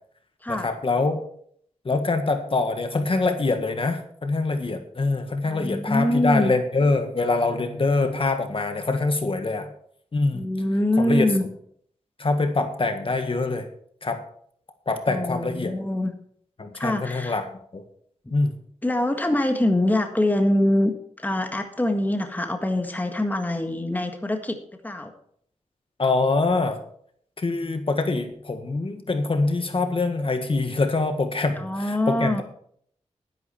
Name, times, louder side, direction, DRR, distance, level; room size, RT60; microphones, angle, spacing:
voice 1, 0.5-1.2 1.9-9.7 10.1-10.4 11.0-11.3 12.2-13.7 14.0-14.2 14.9-15.7 16.6-17.4 17.7-17.8 18.3-18.5 26.0-26.8 27.4-32.4, left 3 dB, 45° left, 7 dB, 1.7 m, -24 dB
voice 2, 5.4-6.5 10.3-11.4 15.1-16.1 16.7-17.4 18.8-24.6 24.8-25.1 31.5-32.4, left 1 dB, 15° left, 5 dB, 1.6 m, -24 dB
12.0 x 10.5 x 4.4 m, 0.63 s
wide cardioid pair, 70°, 12 cm